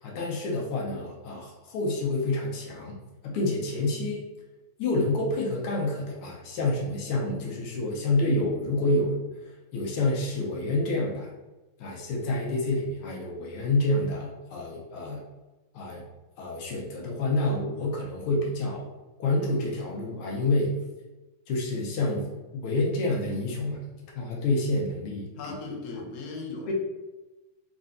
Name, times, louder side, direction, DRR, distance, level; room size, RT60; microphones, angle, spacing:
voice 1, 0.0-3.0 3.2-4.2 4.8-11.3 11.8-15.2 15.7-16.0 16.4-18.9 19.2-20.7 21.5-23.8 24.1-25.5 26.7-26.8, left 2 dB, 85° left, -2 dB, 1.7 m, -28 dB
voice 2, 25.4-26.7, left 3 dB, 70° left, 0 dB, 0.9 m, -37 dB
3.7 x 3.3 x 2.5 m, 1.1 s
omnidirectional pair, 2.4 m